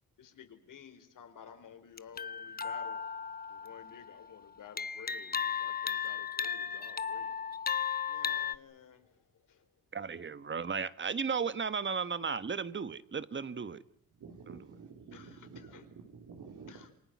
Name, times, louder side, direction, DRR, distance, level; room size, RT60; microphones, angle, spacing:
voice 1, 0.2-3.0 3.5-7.3 8.1-9.7 15.1-15.8 16.7-16.9, left 8 dB, 65° left, 8 dB, 4.8 m, -53 dB
sound 1, 2.0-4.2 4.8-8.6, left 7 dB, 25° left, 0.9 m, -35 dB
voice 2, 9.9-13.8 14.5-14.6, right 5 dB, 35° right, 14 dB, 1.5 m, -35 dB
voice 3, 14.1-16.9, right 5 dB, 60° right, 1 dB, 3.9 m, -50 dB
28.0 x 25.5 x 6.2 m, 0.70 s
cardioid pair, 90°, 35 cm